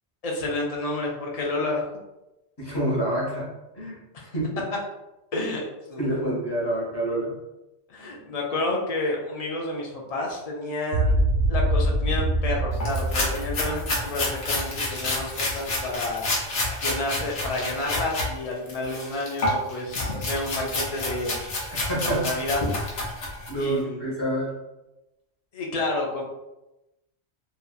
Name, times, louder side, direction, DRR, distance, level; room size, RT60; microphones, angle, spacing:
voice 1, 0.2-1.8 4.1-4.2 5.3-6.2 7.9-11.1 11.5-16.3 16.8-21.4 22.0-22.7 23.6-24.1 25.5-26.2, left 2 dB, 50° left, -1 dB, 0.4 m, -30 dB
voice 2, 2.6-4.5 6.0-7.4 8.0-8.1 21.9-22.3 23.5-24.5, right 1 dB, 25° left, -6 dB, 0.8 m, -28 dB
sound 1, 10.9-15.3, right 1 dB, 80° right, 0.9 m, -25 dB
sound 2, 12.8-18.3 18.7-23.6, left 2 dB, 85° left, 1.1 m, -29 dB
2.8 x 2.3 x 2.3 m, 0.97 s
omnidirectional pair, 1.2 m